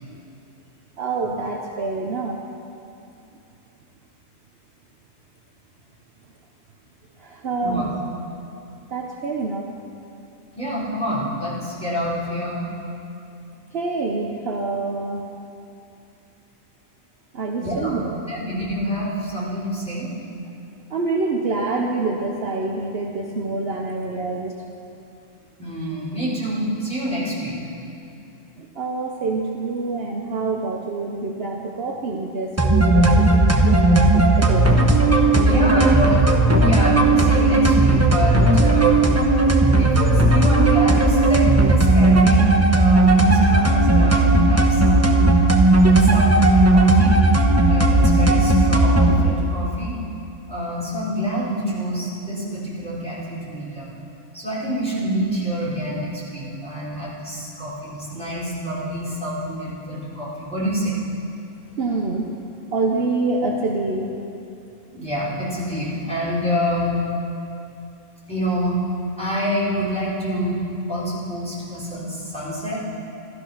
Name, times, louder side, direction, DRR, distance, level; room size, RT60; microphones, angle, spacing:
voice 1, 1.0-2.4 7.2-7.9 8.9-9.7 13.7-15.2 17.3-18.2 20.9-24.5 28.6-34.8 35.3-35.9 61.8-62.3 62.7-64.1, right 3 dB, 55° right, 0 dB, 1.1 m, -26 dB
voice 2, 10.5-12.6 17.6-18.0 18.3-20.1 25.6-27.6 35.4-36.2 36.6-39.1 39.8-45.3 45.8-47.2 47.7-50.0 50.5-53.9 54.3-61.0 64.9-67.0 68.3-68.8 69.2-70.6 70.9-72.8, equal, 5° left, -9 dB, 4.4 m, -27 dB
sound 1, 32.6-49.2, right 2 dB, 15° right, 0.9 m, -15 dB
15.5 x 13.5 x 5.8 m, 2.7 s
omnidirectional pair, 1.3 m